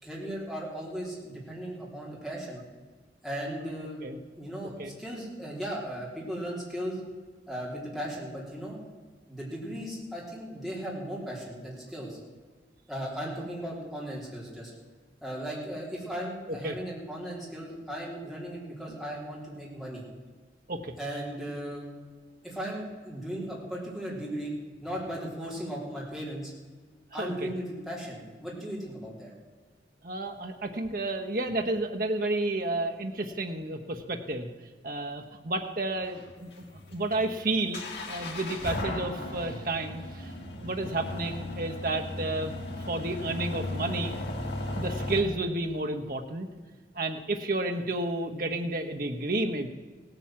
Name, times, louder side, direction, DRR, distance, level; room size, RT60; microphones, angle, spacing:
voice 1, 0.0-2.6 3.2-4.0 4.4-7.0 7.5-8.8 9.3-12.2 12.9-14.7 15.2-20.0 21.0-21.9 22.4-24.5 24.8-26.5 27.1-29.3, equal, ahead, -5 dB, 3.5 m, -37 dB
voice 2, 27.1-27.5 30.0-34.5 34.8-36.6 36.9-40.3 40.6-44.1 44.7-46.5 46.9-49.7, right 2 dB, 50° right, 4 dB, 1.1 m, -31 dB
sound 1, 36.1-45.2, left 2 dB, 75° left, 2.7 m, -36 dB
17.0 x 9.0 x 7.6 m, 1.4 s
head